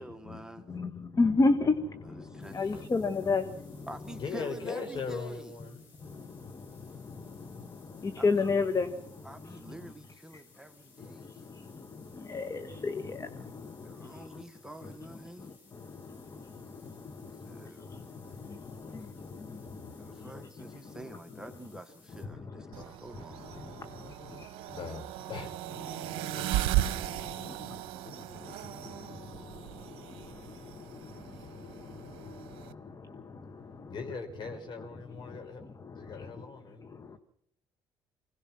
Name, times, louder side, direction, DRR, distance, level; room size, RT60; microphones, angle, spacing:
voice 1, 0.0-0.7 2.2-2.6 3.9-5.5 8.2-8.3 9.2-11.3 13.8-15.5 17.4-17.9 20.0-23.4, equal, 5° right, 1.6 m, -46 dB
voice 2, 0.7-3.9 6.0-9.9 10.3-10.4 11.0-14.5 14.8-21.4 22.1-24.8 25.8-34.0 35.1-36.3 36.7-37.2, left 3 dB, 35° left, 1.8 m, -35 dB
voice 3, 2.2-2.9 4.1-5.8 18.2-19.9 22.7-22.9 24.7-25.6 31.4-31.5 33.9-35.6 35.9-36.9, left 4 dB, 50° left, 5.1 m, -41 dB
sound 1, 2.4-22.2, left 4 dB, 80° left, 7.1 m, -61 dB
sound 2, 22.7-32.7, right 15 dB, 70° right, 0.9 m, -37 dB
25.0 x 18.0 x 6.2 m
hypercardioid pair, 60°, 10 cm